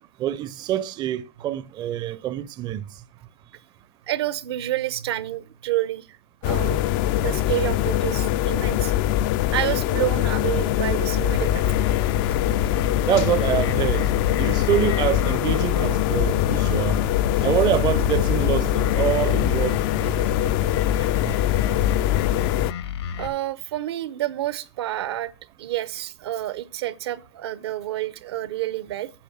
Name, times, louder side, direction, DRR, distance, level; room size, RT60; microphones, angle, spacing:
voice 1, 0.2-2.8 13.0-14.1 14.4-17.0 17.4-20.3 21.2-21.3, right 12 dB, 30° right, 0.5 m, -25 dB
voice 2, 4.1-6.1 6.4-6.8 7.2-8.9 9.5-11.8 17.4-17.5 21.0-21.1 23.2-25.3 25.6-29.1, right 14 dB, 70° right, 0.7 m, -29 dB
sound 1, 6.4-22.7, left 12 dB, 50° left, 0.4 m, -23 dB
sound 2, 11.3-23.3, left 6 dB, 75° left, 1.6 m, -30 dB
8.7 x 6.4 x 6.4 m
hypercardioid pair, 115°, 14 cm